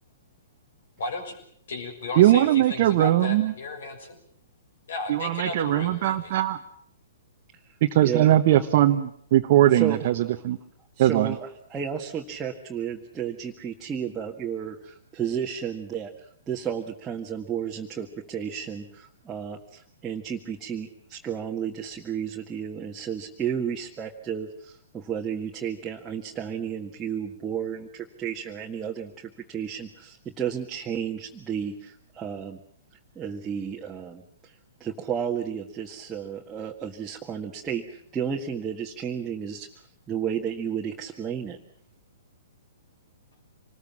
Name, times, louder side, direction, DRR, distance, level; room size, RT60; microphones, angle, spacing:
voice 1, 1.0-1.4 1.7-4.2 4.9-6.3, left 3 dB, 60° left, 6 dB, 6.2 m, -34 dB
voice 2, 2.2-3.5 5.1-6.6 7.8-10.6 11.0-11.4, right 13 dB, 45° right, 5 dB, 1.1 m, -20 dB
voice 3, 8.0-8.4 9.7-10.0 11.0-16.1 16.5-32.6 33.2-34.5 34.8-39.7 40.1-41.6, right 8 dB, 15° right, -1 dB, 1.8 m, -32 dB
26.0 x 20.5 x 7.4 m, 0.65 s
figure-of-eight pair, 115°, 0 cm